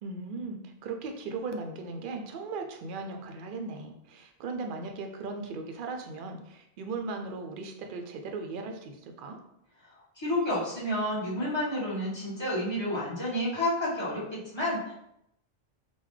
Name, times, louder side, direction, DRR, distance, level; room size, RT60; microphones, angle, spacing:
voice 1, 0.0-9.4, right 3 dB, 60° right, 4 dB, 0.6 m, -37 dB
voice 2, 10.2-14.9, left 1 dB, 25° left, -8 dB, 1.2 m, -30 dB
3.8 x 2.2 x 3.1 m, 0.80 s
omnidirectional pair, 1.1 m